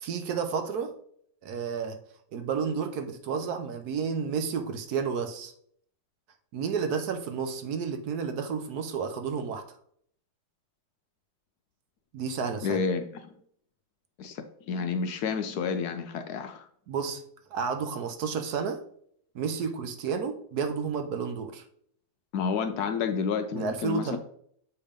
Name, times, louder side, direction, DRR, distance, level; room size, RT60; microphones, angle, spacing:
voice 1, 0.0-1.0 1.4-2.0 2.3-5.5 6.5-9.6 12.1-12.8 16.9-17.2 17.5-18.8 19.3-21.6 23.5-24.2, right 6 dB, 65° right, 6 dB, 1.1 m, -31 dB
voice 2, 12.6-13.3 14.2-16.7 22.3-24.2, left 6 dB, 70° left, 8 dB, 1.0 m, -30 dB
7.0 x 3.4 x 5.1 m, 0.64 s
omnidirectional pair, 2.1 m